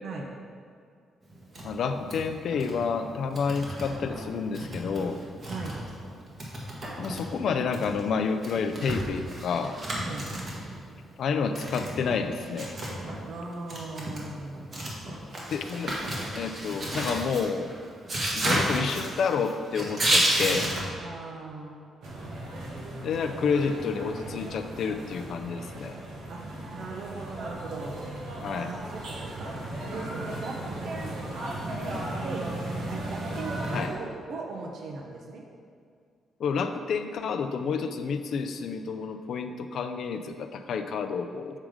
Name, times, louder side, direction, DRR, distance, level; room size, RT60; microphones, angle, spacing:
sound 1, 1.3-1.7 2.0-2.2 2.5-2.8 3.1-4.2 4.5-6.1 6.4-10.8 11.6-13.2 13.5-20.8, right 1 dB, 45° right, 1.5 m, -31 dB
voice 1, 1.6-5.2 7.0-9.8 11.2-12.7 15.5-16.0 16.4-17.7 18.3-20.7 23.0-26.0 28.4-28.7 33.7-33.9 36.4-41.6, left 5 dB, 65° left, 7 dB, 0.4 m, -29 dB
voice 2, 10.0-10.3 13.2-14.9 21.0-21.8 26.3-26.4 26.7-28.0 28.5-29.5 29.8-31.2 32.2-32.5 32.9-35.4, right 3 dB, 60° right, 1 dB, 0.7 m, -38 dB
sound 2, 22.0-33.9, right 1 dB, 80° right, 1.3 m, -36 dB
7.4 x 3.7 x 4.9 m, 2.2 s
cardioid pair, 95°, 0 cm